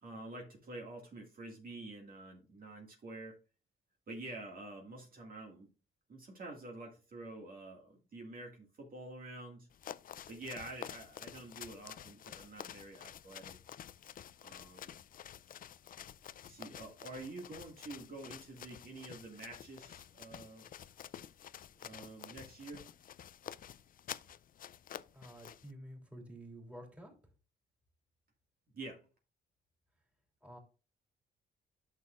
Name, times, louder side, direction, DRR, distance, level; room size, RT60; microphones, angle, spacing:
voice 1, 0.0-3.4 4.1-5.7 6.1-9.7 10.3-13.6 14.4-15.0 16.4-20.6 21.8-22.9 28.7-29.1, right 2 dB, 45° right, 2.0 m, -48 dB
sound 1, 9.7-25.7, left 10 dB, 45° left, 0.4 m, -50 dB
voice 2, 25.1-27.1 30.4-30.6, right 1 dB, 5° right, 3.1 m, -50 dB
11.0 x 6.4 x 2.5 m
cardioid pair, 90°, 20 cm